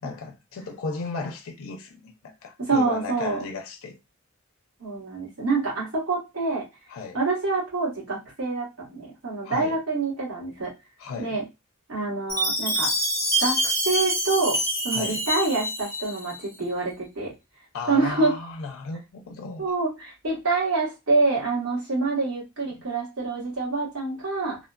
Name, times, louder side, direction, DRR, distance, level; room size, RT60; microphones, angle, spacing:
voice 1, 0.0-4.0 6.9-7.2 9.4-9.8 11.0-11.4 14.9-15.2 17.7-19.7, left 4 dB, 85° left, 0.4 m, -35 dB
voice 2, 2.6-3.4 4.8-6.6 7.1-10.7 11.2-11.4 11.9-12.9 13.4-17.3 17.9-18.4 19.6-24.6, right 3 dB, 90° right, 1.4 m, -26 dB
Chime, 12.3-16.4, equal, 15° right, 0.7 m, -26 dB
3.1 x 2.1 x 2.4 m
head